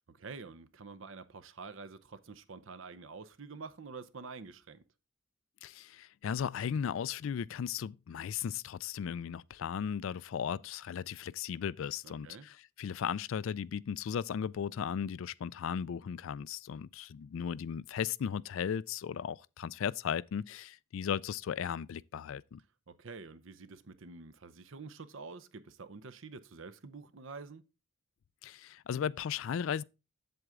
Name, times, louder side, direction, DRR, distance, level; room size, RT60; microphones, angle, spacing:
voice 1, 0.1-4.8 12.0-12.5 22.9-27.6, right 4 dB, 60° right, 0.7 m, -48 dB
voice 2, 5.6-22.6 28.4-29.8, left 8 dB, 65° left, 0.3 m, -36 dB
7.9 x 7.8 x 3.6 m
head